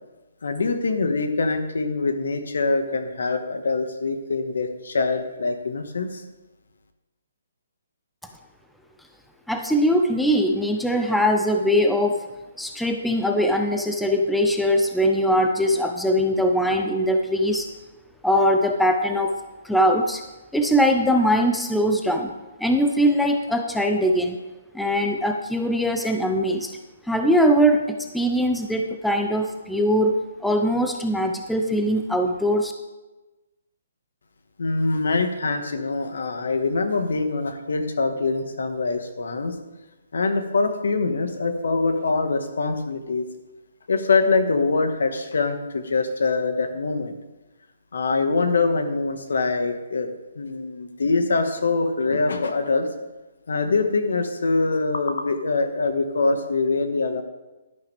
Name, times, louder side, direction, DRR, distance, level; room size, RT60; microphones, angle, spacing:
voice 1, 0.4-6.2 34.6-39.5 40.1-43.3 43.9-47.2 47.9-50.1 50.3-52.9 53.5-57.2, left 3 dB, 80° left, 7 dB, 1.5 m, -24 dB
voice 2, 9.5-12.2 12.6-17.7 18.2-19.4 19.6-20.2 20.5-22.3 22.6-24.4 24.7-26.7 27.1-30.1 30.4-32.7, equal, ahead, 4 dB, 0.5 m, -21 dB
11.5 x 11.0 x 3.5 m, 1.1 s
hypercardioid pair, 175°, 0 cm